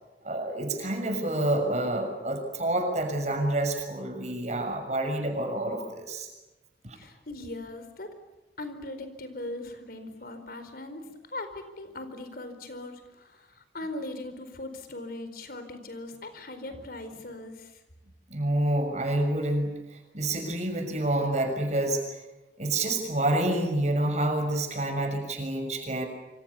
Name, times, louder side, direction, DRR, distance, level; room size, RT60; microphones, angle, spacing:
voice 1, 0.2-6.3 6.8-7.0 18.3-19.8 20.1-22.0 22.6-26.1, right 1 dB, 40° right, 6 dB, 6.6 m, -28 dB
voice 2, 6.9-8.2 8.6-17.8, left 2 dB, 55° left, 9 dB, 4.4 m, -40 dB
27.5 x 27.0 x 7.1 m, 1.1 s
head